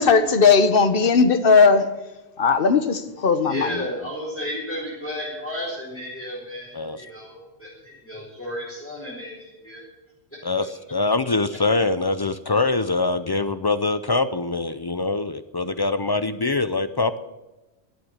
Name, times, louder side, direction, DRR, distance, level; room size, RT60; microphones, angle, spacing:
voice 1, 0.0-1.9 2.4-3.7, left 5 dB, 60° left, 1.2 m, -17 dB
voice 2, 3.4-9.8 10.3-10.4, equal, 10° left, 4.0 m, -33 dB
voice 3, 10.4-17.2, left 3 dB, 40° left, 0.3 m, -24 dB
12.5 x 8.0 x 8.8 m
omnidirectional pair, 1.1 m